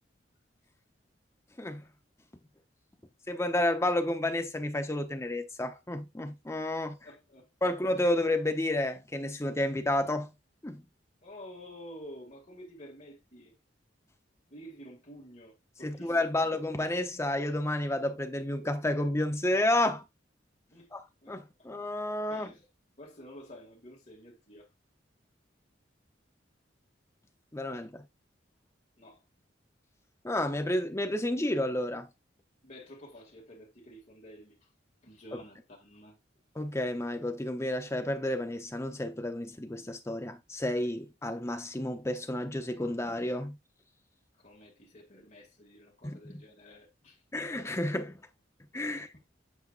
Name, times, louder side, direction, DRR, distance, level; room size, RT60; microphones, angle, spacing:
voice 1, 3.3-7.0 7.6-10.3 10.6-10.8 15.8-20.0 20.9-21.0 21.3-22.5 27.5-28.1 30.2-32.1 36.6-43.6 46.0-46.4 47.3-48.2 48.7-49.1, left 1 dB, 15° left, 0.7 m, -31 dB
voice 2, 7.0-7.8 11.2-13.5 14.5-16.4 20.7-20.9 21.2-21.7 22.3-22.6 23.0-24.7 27.7-27.8 29.0-29.2 32.6-34.7 35.0-36.2 44.4-47.2 48.9-49.2, equal, 40° left, 2.3 m, -50 dB
8.2 x 4.7 x 2.5 m
head